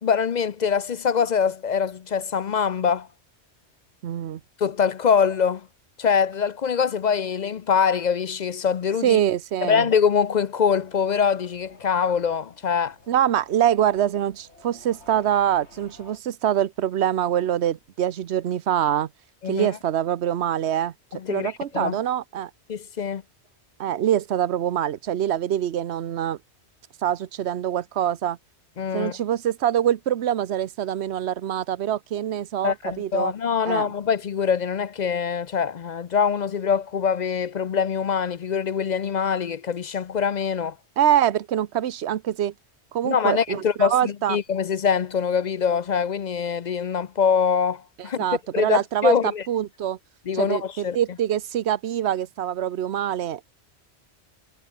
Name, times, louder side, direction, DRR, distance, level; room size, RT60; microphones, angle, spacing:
voice 1, 0.0-3.1 4.6-5.7 6.0-9.2 9.6-13.0 19.4-19.7 21.1-22.0 22.7-23.2 28.8-29.2 32.6-40.7 43.0-48.2 48.5-49.4 50.3-51.0, left 7 dB, 50° left, 0.6 m, -24 dB
voice 2, 4.0-4.4 9.0-9.9 13.1-19.1 19.5-20.9 21.3-22.5 23.8-26.4 27.0-28.4 28.9-33.3 33.7-33.9 41.0-42.5 42.9-44.4 48.2-50.0 50.3-53.4, right 10 dB, 75° right, 1.1 m, -24 dB
sound 1, 10.5-16.2, left 2 dB, 80° left, 4.9 m, -53 dB
omnidirectional pair, 1.1 m